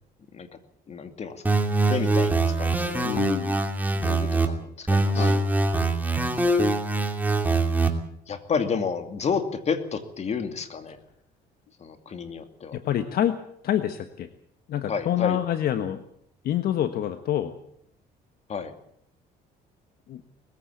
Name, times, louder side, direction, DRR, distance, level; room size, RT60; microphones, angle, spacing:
voice 1, 0.9-1.4 1.9-3.2 3.9-5.3 8.3-11.0 11.8-12.8 14.9-15.4 18.5-18.7, left 6 dB, 40° left, 9 dB, 2.5 m, -31 dB
sound 1, 1.4-4.5 4.9-7.9, right 2 dB, 10° right, 2.7 m, -23 dB
voice 2, 3.0-3.6 5.1-5.5 12.7-14.3 14.7-16.0 16.4-17.5 20.1-20.2, left 11 dB, 65° left, 10 dB, 1.3 m, -27 dB
21.0 x 15.5 x 8.5 m, 0.71 s
cardioid pair, 110°, 17 cm